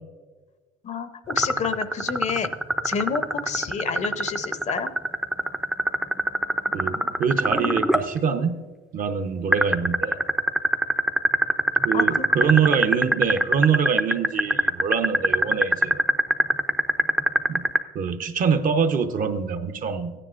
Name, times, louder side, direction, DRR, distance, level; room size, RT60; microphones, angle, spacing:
voice 1, 0.8-2.5 2.8-4.9 11.9-12.3, left 6 dB, 45° left, 11 dB, 0.6 m, -29 dB
sound 1, 1.3-8.0 9.5-17.8, right 1 dB, 5° right, 0.4 m, -21 dB
voice 2, 6.7-8.5 8.9-10.2 11.8-16.0 17.5-17.6 17.9-20.1, right 6 dB, 55° right, 9 dB, 0.7 m, -24 dB
15.0 x 9.9 x 2.5 m, 1.3 s
cardioid pair, 110°, 17 cm